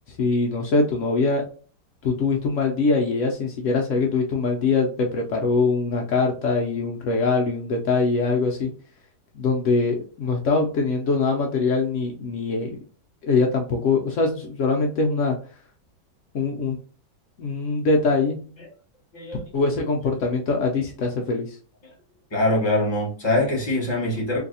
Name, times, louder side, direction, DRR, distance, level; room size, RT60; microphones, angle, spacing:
voice 1, 0.1-1.4 2.0-8.7 9.3-12.7 13.2-15.3 16.3-16.8 17.4-18.4 19.5-21.6, left 3 dB, 85° left, 0.6 m, -23 dB
voice 2, 22.3-24.4, left 1 dB, 20° left, 0.9 m, -23 dB
3.2 x 2.6 x 2.6 m
omnidirectional pair, 1.9 m